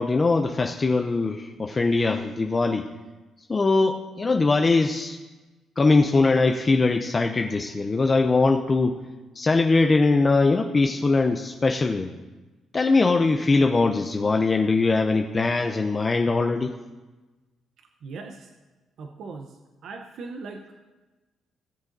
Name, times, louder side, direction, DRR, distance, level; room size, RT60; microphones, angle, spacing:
voice 1, 0.0-2.9 3.5-5.2 5.8-9.0 9.4-12.1 12.7-16.7, left 3 dB, 30° left, 4 dB, 0.5 m, -21 dB
voice 2, 18.0-18.5 19.0-19.5 19.8-20.6, right 4 dB, 70° right, 4 dB, 0.7 m, -38 dB
17.5 x 7.2 x 2.6 m, 1.2 s
cardioid pair, 90°, 0 cm